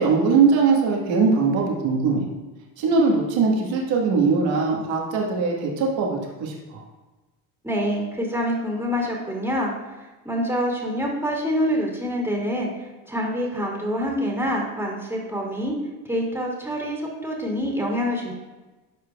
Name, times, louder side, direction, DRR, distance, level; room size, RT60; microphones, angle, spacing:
voice 1, 0.0-2.2 2.8-6.8, right 4 dB, 65° right, -1 dB, 1.6 m, -21 dB
voice 2, 7.6-9.7 10.2-15.7 16.0-18.3, equal, 5° right, -2 dB, 2.3 m, -26 dB
12.0 x 4.5 x 2.3 m, 1.2 s
supercardioid pair, 70°, 48 cm